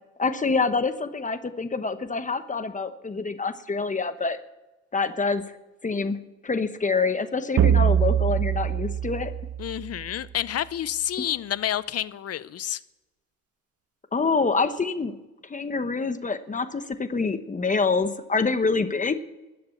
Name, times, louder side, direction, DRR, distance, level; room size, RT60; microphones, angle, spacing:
voice 1, 0.2-4.4 4.9-5.4 5.8-6.2 6.4-9.3 11.2-11.3 14.1-15.2 15.4-19.2, left 4 dB, 25° left, 10 dB, 1.0 m, -26 dB
sound 1, 7.6-10.2, right 9 dB, 50° right, 0.6 m, -23 dB
voice 2, 9.6-12.8, left 11 dB, 55° left, 17 dB, 0.7 m, -29 dB
13.0 x 8.6 x 8.6 m, 1.1 s
cardioid pair, 90°, 30 cm